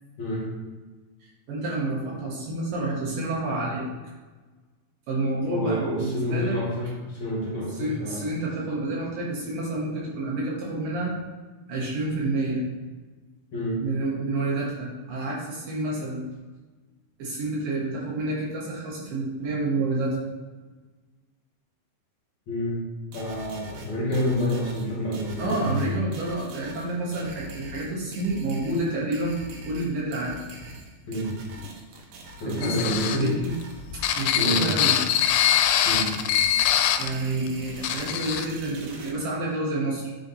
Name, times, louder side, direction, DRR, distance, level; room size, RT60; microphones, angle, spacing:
voice 1, 1.5-3.8 5.1-6.6 7.8-11.1 11.7-12.6 13.8-16.2 17.2-20.2 25.4-29.3 29.7-30.4 32.5-32.8 33.0-33.5 33.9-34.9 37.0-40.1, right 2 dB, 65° right, -5 dB, 2.8 m, -29 dB
voice 2, 5.5-8.3 13.5-13.8 22.5-22.8 23.1-25.8 31.1-31.3 32.4-33.3 34.4-34.7 35.8-36.1, equal, 55° left, -7 dB, 2.6 m, -28 dB
sound 1, 23.1-39.1, right 2 dB, 85° right, 1.6 m, -43 dB
sound 2, 32.6-37.1 37.5-37.6 37.8-38.5, left 10 dB, 90° left, 2.7 m, -23 dB
9.4 x 3.5 x 4.1 m, 1.3 s
omnidirectional pair, 4.7 m